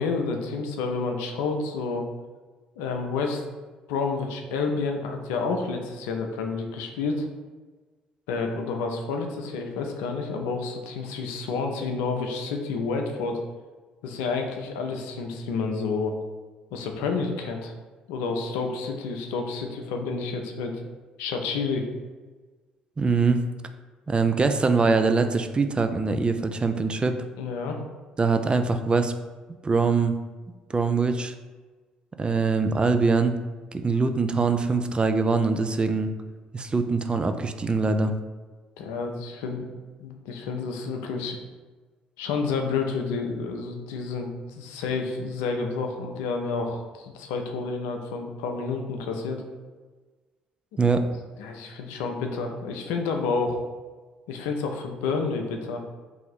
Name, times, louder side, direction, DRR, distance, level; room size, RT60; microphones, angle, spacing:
voice 1, 0.0-2.1 2.8-3.4 3.9-7.3 8.3-13.4 14.0-16.1 16.7-17.7 18.1-20.8 21.2-21.9 27.4-27.8 38.8-39.7 40.0-41.4 42.2-49.4 51.4-53.6 54.3-55.8, left 4 dB, 75° left, 3 dB, 0.4 m, -29 dB
voice 2, 23.0-23.4 24.1-27.2 28.2-29.1 29.6-30.1 30.7-31.3 32.2-33.4 33.7-36.1 36.5-38.1 50.8-51.0, right 4 dB, 25° right, 7 dB, 0.3 m, -23 dB
2.7 x 2.6 x 4.0 m, 1.3 s
hypercardioid pair, 50°, 4 cm